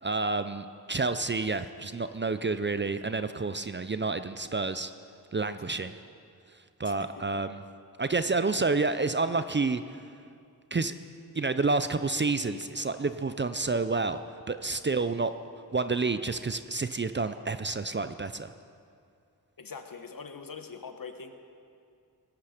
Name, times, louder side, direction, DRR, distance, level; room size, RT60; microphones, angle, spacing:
voice 1, 0.0-4.9 5.3-5.9 6.8-7.6 8.0-9.8 10.7-10.9 11.3-14.2 14.5-15.3 15.7-18.5, right 3 dB, 30° right, 11 dB, 0.5 m, -29 dB
voice 2, 6.8-7.2 19.6-21.3, left 5 dB, 60° left, 7 dB, 1.1 m, -43 dB
17.5 x 10.5 x 5.0 m, 2.4 s
wide cardioid pair, 65°, 39 cm